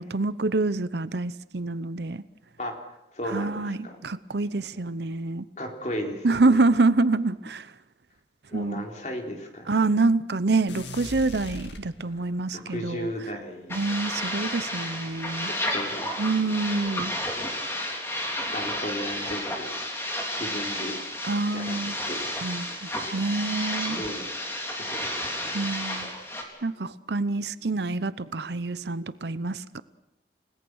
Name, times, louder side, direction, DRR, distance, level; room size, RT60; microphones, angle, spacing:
voice 1, 0.0-2.2 3.3-5.4 6.2-7.7 8.5-8.9 9.7-13.1 13.7-15.5 16.2-17.1 21.2-21.9 22.4-24.0 25.5-26.1 26.6-29.8, right 3 dB, 75° right, 15 dB, 0.8 m, -26 dB
voice 2, 3.1-4.0 5.6-6.6 8.5-9.9 12.5-13.8 14.0-14.1 15.4-16.5 18.4-19.7 20.4-21.0 21.5-21.8 22.1-22.9 23.9-24.3 24.5-25.5 26.5-26.6, equal, 40° left, 2 dB, 3.9 m, -36 dB
sound 1, 10.7-12.5, left 2 dB, 85° left, 2.2 m, -40 dB
sound 2, 13.7-26.4, left 1 dB, 15° left, 3.5 m, -32 dB
30.0 x 18.0 x 6.4 m, 0.89 s
head